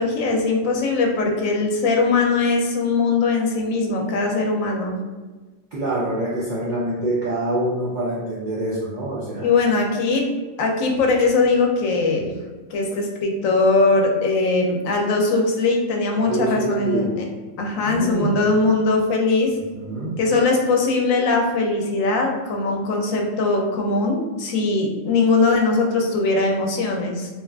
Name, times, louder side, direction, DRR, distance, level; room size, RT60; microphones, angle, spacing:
voice 1, 0.0-5.0 9.4-10.3 10.6-12.3 12.7-17.2 17.6-19.5 20.2-27.3, left 3 dB, 85° left, 1 dB, 1.0 m, -20 dB
voice 2, 5.7-9.5 16.3-17.1 17.8-18.4 19.7-20.1, right 1 dB, 65° right, -7 dB, 0.4 m, -25 dB
2.9 x 2.3 x 2.2 m, 1.3 s
omnidirectional pair, 1.3 m